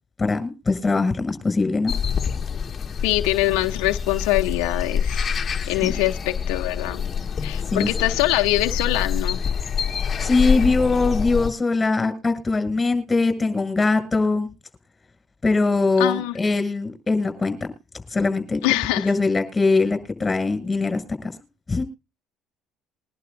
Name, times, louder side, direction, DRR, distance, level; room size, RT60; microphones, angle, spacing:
voice 1, 0.2-1.9 5.8-5.9 7.7-7.9 10.2-14.5 15.4-17.6 18.1-18.6 19.0-21.0 21.7-21.8, left 3 dB, 20° left, 7.5 m, -21 dB
sound 1, 1.9-11.5, left 7 dB, 35° left, 2.0 m, -26 dB
voice 2, 3.0-7.0 7.4-9.4 16.0-16.4 18.6-19.1, left 17 dB, 90° left, 0.9 m, -23 dB
23.5 x 11.5 x 2.7 m
supercardioid pair, 95°, 0 cm